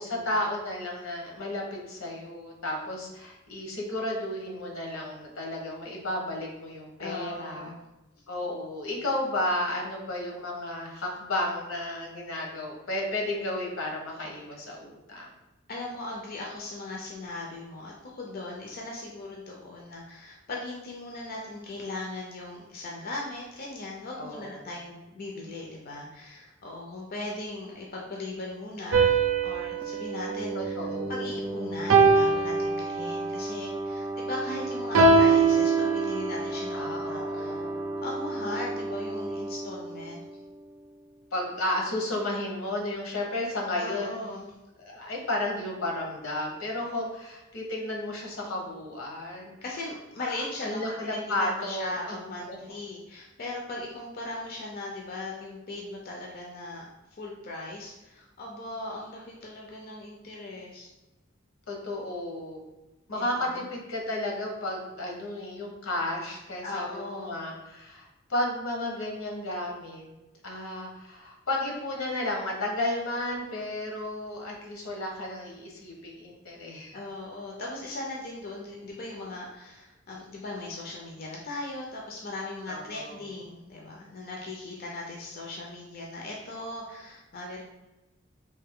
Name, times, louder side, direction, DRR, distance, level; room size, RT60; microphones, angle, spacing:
voice 1, 0.0-7.8 8.3-15.3 24.2-24.7 30.5-31.3 36.7-37.8 41.3-44.2 44.8-49.5 50.6-52.6 61.7-62.6 63.1-70.1 70.4-77.0 82.7-83.2, left 1 dB, 75° left, -1 dB, 0.9 m, -33 dB
voice 2, 7.0-7.8 15.7-29.2 29.4-30.7 31.1-37.7 38.0-40.2 43.8-44.5 49.6-60.9 63.1-63.6 66.6-67.4 76.9-87.6, left 2 dB, 45° left, -1 dB, 0.5 m, -38 dB
sound 1, 28.9-31.3 31.9-33.4 34.9-36.6, right 4 dB, 75° right, 0.5 m, -23 dB
sound 2, 29.8-41.2, right 1 dB, 5° right, 0.3 m, -35 dB
3.3 x 2.6 x 3.6 m, 1.0 s
head